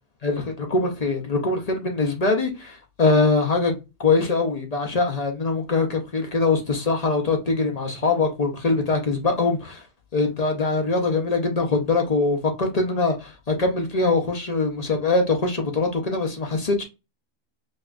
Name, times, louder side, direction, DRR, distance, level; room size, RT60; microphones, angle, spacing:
voice 1, 0.2-9.8 10.1-16.8, left 3 dB, 40° left, 0.6 m, -23 dB
5.1 x 2.3 x 2.5 m
omnidirectional pair, 1.4 m